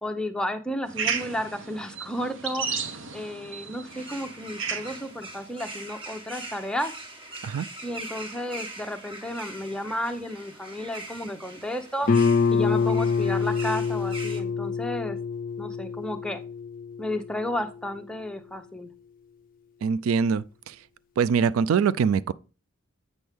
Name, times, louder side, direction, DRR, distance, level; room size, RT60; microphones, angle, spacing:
voice 1, 0.0-6.9 7.8-12.1 12.5-15.2 15.6-16.4 17.0-18.9, left 1 dB, 5° left, 0.6 m, -32 dB
sound 1, 0.9-5.1, right 6 dB, 65° right, 0.9 m, -33 dB
sound 2, 3.9-14.4, right 2 dB, 25° right, 1.3 m, -42 dB
Guitar, 12.1-17.5, left 5 dB, 40° left, 0.4 m, -26 dB
voice 2, 19.8-20.7 21.2-22.3, right 6 dB, 80° right, 0.3 m, -23 dB
8.2 x 6.1 x 3.5 m
head